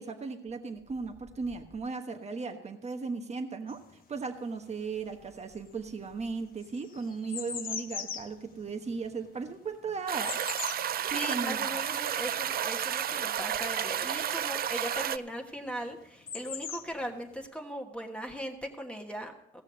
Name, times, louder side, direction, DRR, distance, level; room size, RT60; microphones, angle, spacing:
voice 1, 0.0-3.8 4.1-10.5 11.1-11.8, right 4 dB, 35° right, 6 dB, 1.2 m, -36 dB
sound 1, 3.7-4.8 5.2-14.5 15.5-15.6 15.8-17.4, left 7 dB, 50° left, 1.1 m, -41 dB
sound 2, 10.1-15.2, right 9 dB, 50° right, 0.4 m, -32 dB
voice 2, 10.7-19.6, equal, 5° left, 2 dB, 1.3 m, -39 dB
16.5 x 6.4 x 6.2 m, 0.81 s
cardioid pair, 90°, 20 cm